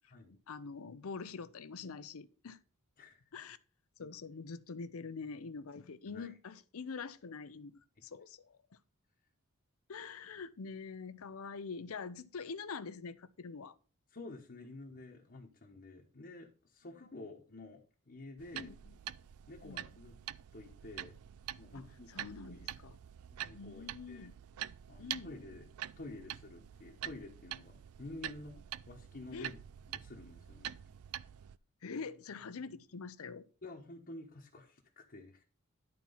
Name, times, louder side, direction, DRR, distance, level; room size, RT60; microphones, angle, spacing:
voice 1, 0.5-2.6 3.3-3.6 4.0-8.6 9.9-13.7 18.5-19.0 19.6-19.9 21.7-23.0 23.5-24.3 25.0-25.4 29.3-29.5 31.8-33.5, left 5 dB, 75° left, 0.6 m, -45 dB
voice 2, 14.1-18.7 19.5-20.2 20.5-21.2 21.6-22.6 23.3-24.3 24.9-25.7 26.0-29.6 29.9-30.8 33.6-35.4, left 2 dB, 45° left, 1.1 m, -50 dB
sound 1, 18.4-31.6, right 11 dB, 80° right, 0.4 m, -46 dB
11.0 x 4.4 x 5.5 m
head